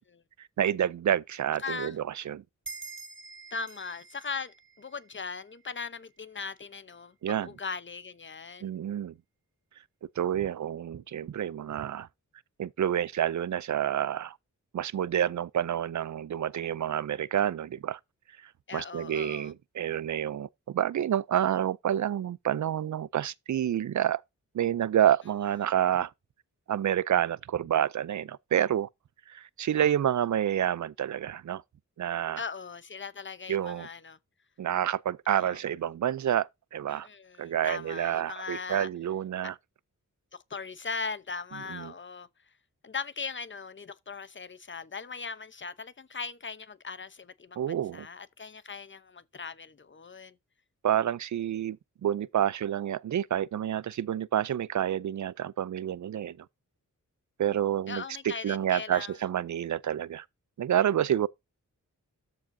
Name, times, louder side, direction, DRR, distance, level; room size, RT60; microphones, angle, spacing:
voice 1, 0.6-2.4 7.2-7.5 8.6-9.1 10.2-12.1 12.6-14.4 14.7-18.0 18.4-24.2 24.5-26.1 26.7-28.9 29.3-31.6 32.0-32.4 33.5-33.9 34.6-37.1 37.4-39.5 41.7-41.9 47.6-48.1 50.8-56.5 57.4-60.2 60.6-61.3, right 10 dB, 65° right, 0.5 m, -29 dB
voice 2, 1.6-2.0 3.5-8.7 18.7-19.5 32.4-34.2 35.3-35.6 36.9-38.9 40.3-42.5 42.8-50.4 57.9-59.1, left 5 dB, 35° left, 0.8 m, -39 dB
sound 1, 2.7-5.8, right 4 dB, 35° right, 2.3 m, -46 dB
13.5 x 4.8 x 2.7 m
wide cardioid pair, 110°, 32 cm